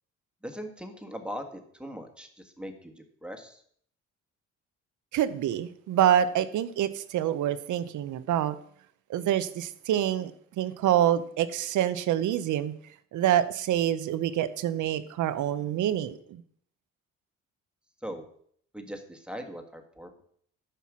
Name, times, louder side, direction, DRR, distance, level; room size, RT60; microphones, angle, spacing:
voice 1, 0.4-2.9 3.2-3.6 18.0-18.3 18.7-20.2, equal, 5° right, 5 dB, 1.5 m, -40 dB
voice 2, 5.1-8.5 9.1-10.3 10.6-12.7 13.1-16.4, right 11 dB, 75° right, 14 dB, 0.8 m, -26 dB
10.5 x 5.6 x 6.2 m, 0.63 s
cardioid pair, 90°, 30 cm